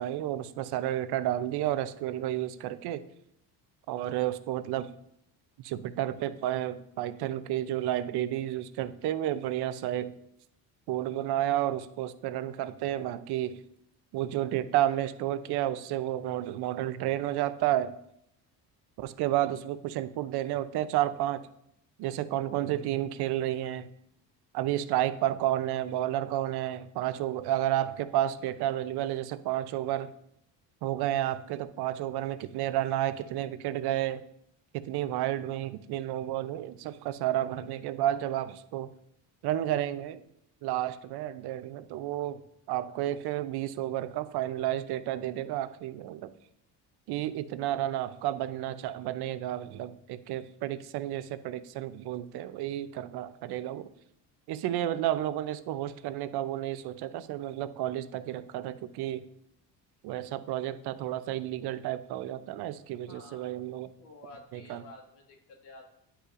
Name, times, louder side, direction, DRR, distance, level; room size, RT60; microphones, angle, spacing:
voice 1, 0.0-3.0 3.9-4.9 5.6-10.1 10.9-13.6 14.1-18.0 19.0-21.4 22.0-23.9 24.5-30.1 30.8-34.2 34.7-38.9 39.4-40.2 40.6-42.4 42.7-46.3 47.1-53.9 54.5-59.3 60.0-63.9 64.5-64.8, right 13 dB, 75° right, 13 dB, 0.6 m, -31 dB
voice 2, 63.1-65.9, left 2 dB, 85° left, 0 dB, 1.8 m, -51 dB
9.8 x 5.5 x 2.5 m, 0.75 s
cardioid pair, 95°, 40 cm